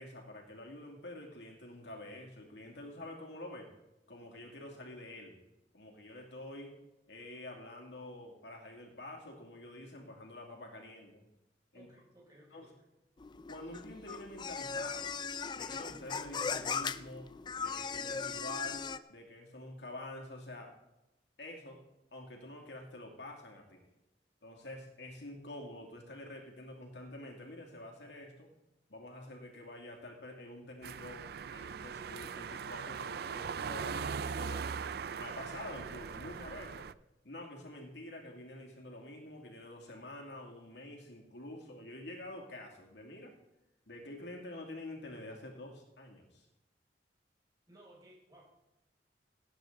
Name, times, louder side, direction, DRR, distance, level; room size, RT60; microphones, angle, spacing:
voice 1, 0.0-3.7 4.1-5.4 5.7-6.7 7.1-11.3 11.7-11.9 12.5-12.7 13.5-15.1 15.5-17.3 17.6-20.7 21.4-21.8 22.1-23.8 24.4-28.5 28.9-34.7 35.2-36.9 37.2-43.3 43.9-46.5, left 1 dB, 70° left, 1 dB, 2.6 m, -47 dB
voice 2, 11.7-12.8 47.7-48.4, right 1 dB, 20° right, -4 dB, 5.7 m, -59 dB
sound 1, 13.2-19.0, left 5 dB, 25° left, 0.4 m, -38 dB
sound 2, 30.8-36.9, right 6 dB, 60° right, 0.4 m, -40 dB
17.5 x 8.9 x 4.0 m, 0.93 s
head